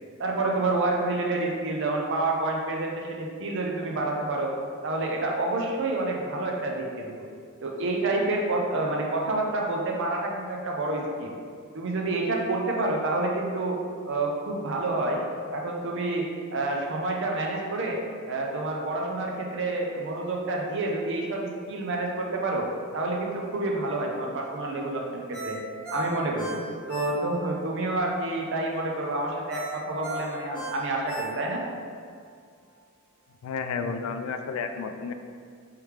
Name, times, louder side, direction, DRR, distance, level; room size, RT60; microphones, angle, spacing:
voice 1, 0.2-4.5 4.8-7.3 7.6-11.3 11.7-13.8 14.1-15.2 15.5-18.0 18.3-22.7 22.9-25.6 25.9-26.6 26.9-31.6, right 2 dB, 60° right, 0 dB, 0.5 m, -28 dB
Ringtone, 25.3-27.6 28.0-28.1 29.5-31.7 32.1-32.2, right 3 dB, 5° left, 0.9 m, -36 dB
voice 2, 33.4-35.1, left 5 dB, 80° left, 7 dB, 0.3 m, -31 dB
3.2 x 3.2 x 3.2 m, 2.1 s
head